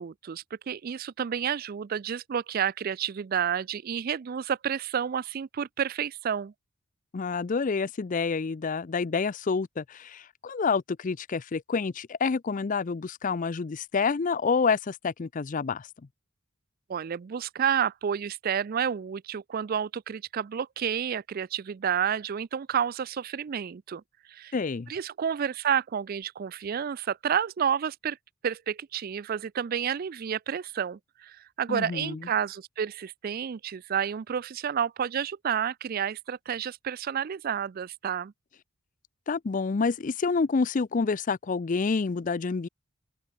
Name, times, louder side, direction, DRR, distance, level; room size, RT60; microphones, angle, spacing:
voice 1, 0.0-6.5 16.9-24.0 24.3-24.5 24.9-28.2 28.4-38.3, right 8 dB, 45° right, 0.4 m, -30 dB
voice 2, 7.1-15.9 24.5-24.9 31.7-32.2 39.3-42.7, left 4 dB, 40° left, 0.4 m, -28 dB
open air
head